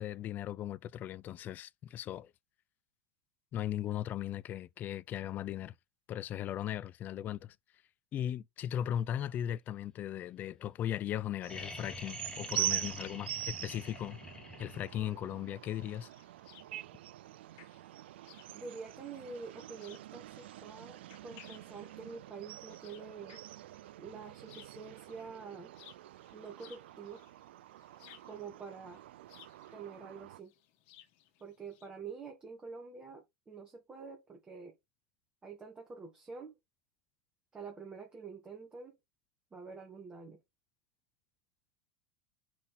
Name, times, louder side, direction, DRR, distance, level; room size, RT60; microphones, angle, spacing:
voice 1, 0.0-2.3 3.5-5.7 6.1-7.6 8.1-14.2 14.6-16.1, left 11 dB, 30° left, 0.4 m, -37 dB
sound 1, 11.4-30.4, right 14 dB, 80° right, 0.4 m, -44 dB
sound 2, 11.5-15.3 17.0-17.1, left 2 dB, 10° left, 2.1 m, -47 dB
sound 3, 15.3-31.9, left 12 dB, 55° left, 1.8 m, -61 dB
voice 2, 18.5-23.4 24.0-25.7 26.3-27.3 28.2-29.0 29.7-30.5 31.4-34.8 35.4-36.5 37.5-39.0 39.5-40.4, right 5 dB, 15° right, 2.0 m, -47 dB
5.8 x 4.2 x 6.1 m
supercardioid pair, 130°, 6 cm